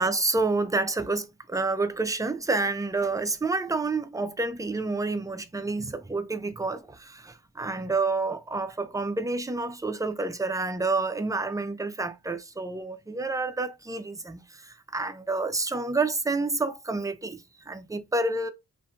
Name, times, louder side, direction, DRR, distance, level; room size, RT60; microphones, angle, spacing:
voice 1, 0.0-18.5, right 3 dB, 10° right, 0.3 m, -29 dB
2.7 x 2.5 x 2.2 m
cardioid pair, 70°, 36 cm